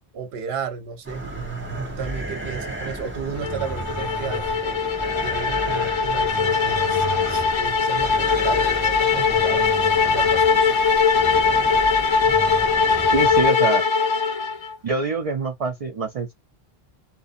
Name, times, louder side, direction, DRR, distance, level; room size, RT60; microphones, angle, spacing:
voice 1, 0.1-1.2 1.9-6.6 6.9-10.8, right 7 dB, 75° right, 0.9 m, -34 dB
sound 1, 1.0-13.5, right 2 dB, 15° right, 0.7 m, -33 dB
sound 2, 3.4-14.8, left 5 dB, 50° left, 0.3 m, -21 dB
voice 2, 13.1-13.8 14.8-16.3, right 3 dB, 55° right, 0.4 m, -25 dB
2.5 x 2.2 x 2.4 m
omnidirectional pair, 1.1 m